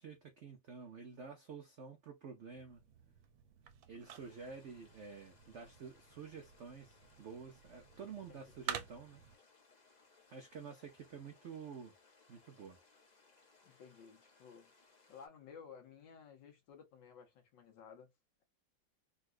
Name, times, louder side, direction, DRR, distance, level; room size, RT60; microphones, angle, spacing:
voice 1, 0.0-2.8 3.9-9.2 10.3-11.9 12.3-12.8, right 5 dB, 70° right, 0.6 m, -50 dB
sound 1, 2.5-9.4, right 9 dB, 85° right, 1.4 m, -50 dB
sound 2, 4.0-15.3, left 4 dB, 40° left, 0.6 m, -68 dB
voice 2, 13.6-14.7 15.1-18.1, left 6 dB, 75° left, 1.7 m, -56 dB
3.9 x 2.4 x 2.4 m
omnidirectional pair, 2.0 m